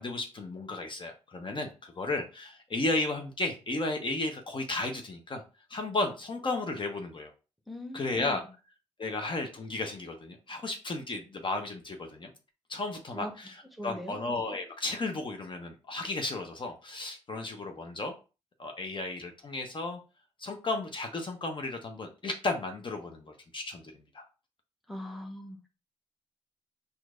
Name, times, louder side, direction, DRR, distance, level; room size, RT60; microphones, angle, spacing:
voice 1, 0.0-5.4 5.7-7.3 7.9-8.4 9.0-12.3 12.7-13.5 13.8-18.1 18.6-20.0 20.4-23.8 24.1-24.3, left 2 dB, 40° left, 4 dB, 0.8 m, -34 dB
voice 2, 7.7-8.5 13.1-13.3 13.7-14.2 24.9-25.7, left 1 dB, ahead, 3 dB, 1.0 m, -41 dB
4.4 x 2.6 x 2.4 m, 0.32 s
supercardioid pair, 50°, 13 cm